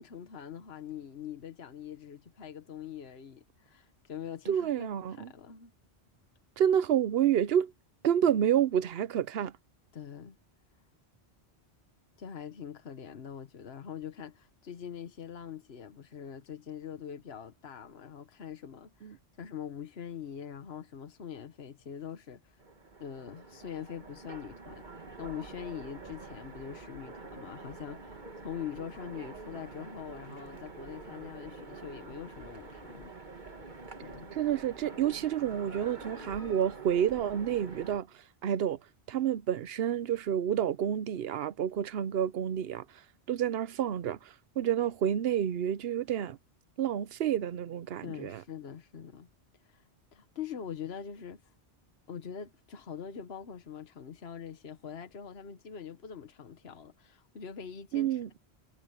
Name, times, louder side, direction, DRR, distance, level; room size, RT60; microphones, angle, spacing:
voice 1, 0.0-5.7 9.9-10.4 12.2-22.6 23.0-33.1 34.0-34.4 48.0-49.3 49.6-49.8 50.1-51.4 52.1-58.4, left 8 dB, 70° left, 1.4 m, -43 dB
voice 2, 4.5-5.3 6.6-7.7 8.0-9.5 19.0-19.1 34.3-38.1 38.4-38.8 39.1-42.8 43.3-44.2 44.6-46.4 46.8-48.4 57.9-58.3, right 9 dB, 70° right, 0.9 m, -29 dB
Train, 22.6-38.0, right 3 dB, 45° right, 1.7 m, -47 dB
sound 1, 32.0-38.0, left 1 dB, 40° left, 7.1 m, -62 dB
omnidirectional pair, 1.1 m